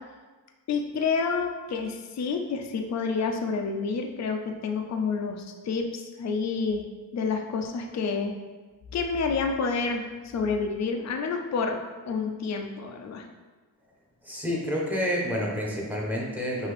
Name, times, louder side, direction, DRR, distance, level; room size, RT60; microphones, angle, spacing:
voice 1, 0.7-8.3 8.9-10.0 10.3-11.8 12.0-13.3, left 5 dB, 45° left, 3 dB, 0.5 m, -29 dB
voice 2, 14.2-16.7, equal, 5° right, -3 dB, 1.2 m, -29 dB
5.7 x 2.7 x 3.3 m, 1.3 s
cardioid pair, 95°, 37 cm